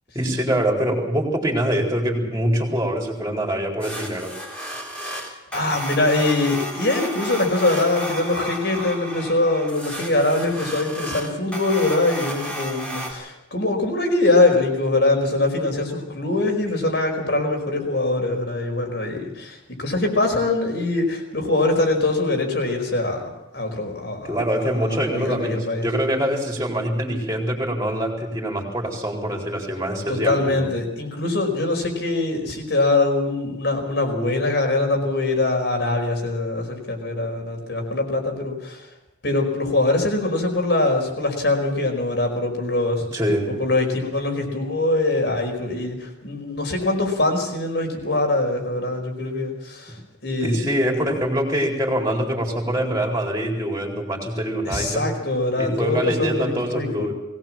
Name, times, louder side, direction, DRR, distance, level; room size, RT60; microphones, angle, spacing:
voice 1, 0.1-4.3 24.2-30.7 43.1-43.5 50.4-55.1 55.6-57.1, equal, 15° right, 1 dB, 4.2 m, -24 dB
sound 1, 3.8-13.1, right 1 dB, 5° left, 3.8 m, -33 dB
voice 2, 5.0-25.9 30.1-38.9 39.2-43.1 43.5-50.7 51.0-51.1 54.6-57.1, left 2 dB, 60° left, 3 dB, 4.9 m, -23 dB
21.0 x 18.5 x 7.5 m, 0.94 s
head